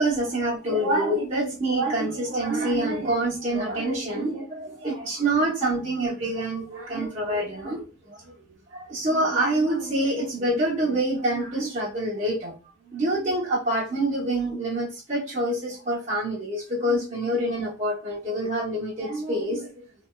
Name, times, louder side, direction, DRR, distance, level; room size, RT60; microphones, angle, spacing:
voice 1, 0.0-8.3 8.7-12.5 12.9-19.9, right 1 dB, 40° right, 1.1 m, -26 dB
3.2 x 2.8 x 2.3 m
head